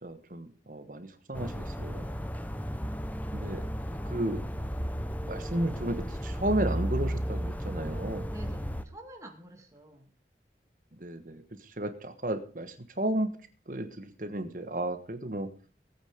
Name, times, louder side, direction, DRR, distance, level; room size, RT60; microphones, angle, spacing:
voice 1, 0.0-2.2 3.3-3.6 3.9-4.4 5.3-8.3 11.0-13.3 13.7-15.5, right 1 dB, 50° right, 9 dB, 1.4 m, -33 dB
sound 1, 1.3-8.8, equal, 10° left, 0.9 m, -34 dB
voice 2, 8.3-10.1, right 1 dB, 15° right, 1 dB, 2.4 m, -49 dB
18.5 x 8.8 x 5.3 m, 0.38 s
head